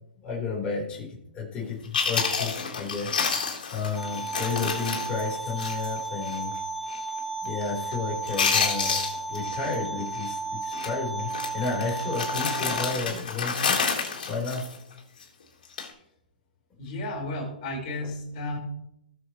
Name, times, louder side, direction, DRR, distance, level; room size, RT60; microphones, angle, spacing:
voice 1, 0.2-3.2 3.7-6.5 7.4-9.0 9.3-13.8 14.3-14.7, left 4 dB, 25° left, -4 dB, 4.0 m, -32 dB
Chewing mastication, 1.6-1.7 1.9-6.0 6.3-6.4 6.9-7.2 7.5-7.9 8.2-9.7 10.0-10.3 10.7-10.9 11.3-15.2 15.6-15.9, left 5 dB, 70° left, 3.7 m, -29 dB
sound 1, 3.9-12.9, right 3 dB, ahead, 5.0 m, -34 dB
voice 2, 16.8-18.6, left 1 dB, 50° left, -1 dB, 4.7 m, -33 dB
19.5 x 7.3 x 3.1 m, 0.75 s
hypercardioid pair, 130°, 5 cm